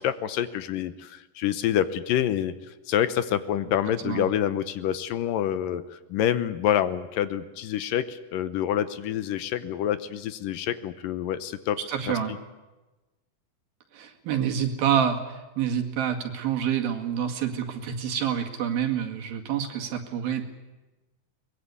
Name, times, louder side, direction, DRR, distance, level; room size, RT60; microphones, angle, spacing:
voice 1, 0.0-2.5 2.9-5.8 6.1-11.8, left 10 dB, 75° left, 13 dB, 2.5 m, -27 dB
voice 2, 11.9-12.3 13.9-20.4, right 8 dB, 80° right, 4 dB, 3.9 m, -27 dB
22.5 x 21.5 x 8.4 m, 1.1 s
omnidirectional pair, 4.1 m